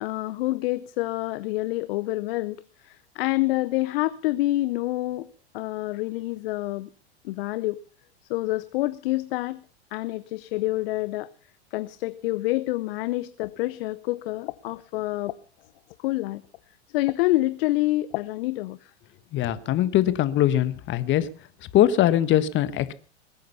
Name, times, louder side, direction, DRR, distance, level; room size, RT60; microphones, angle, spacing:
voice 1, 0.0-5.3 5.5-6.9 7.2-7.8 8.3-9.6 9.9-11.3 11.7-15.4 16.0-16.4 16.9-18.9, left 18 dB, 55° left, 15 dB, 0.7 m, -27 dB
voice 2, 19.3-21.3 21.7-22.9, left 12 dB, 35° left, 14 dB, 1.4 m, -21 dB
21.0 x 9.2 x 5.5 m, 0.40 s
hypercardioid pair, 100°, 33 cm